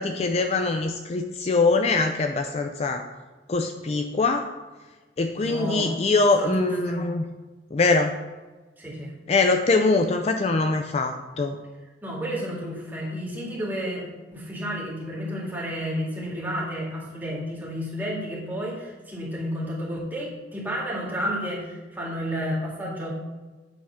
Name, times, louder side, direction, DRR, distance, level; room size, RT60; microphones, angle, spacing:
voice 1, 0.0-3.0 3.5-4.5 5.2-7.2 7.7-8.2 9.3-11.6, left 3 dB, 35° left, 6 dB, 0.4 m, -23 dB
voice 2, 5.4-6.0 6.3-7.0 8.8-9.1 12.0-23.1, equal, 10° right, -5 dB, 2.0 m, -31 dB
8.8 x 3.6 x 5.7 m, 1.3 s
head